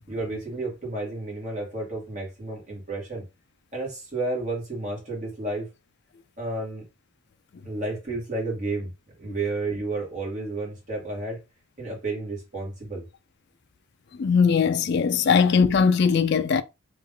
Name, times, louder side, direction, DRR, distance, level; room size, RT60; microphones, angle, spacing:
voice 1, 0.1-3.2 3.7-5.7 6.4-6.9 7.6-8.9 9.2-11.4 11.8-13.0, right 2 dB, 35° right, 2.0 m, -31 dB
voice 2, 14.2-16.6, left 6 dB, 50° left, 0.4 m, -20 dB
3.5 x 3.1 x 3.7 m
head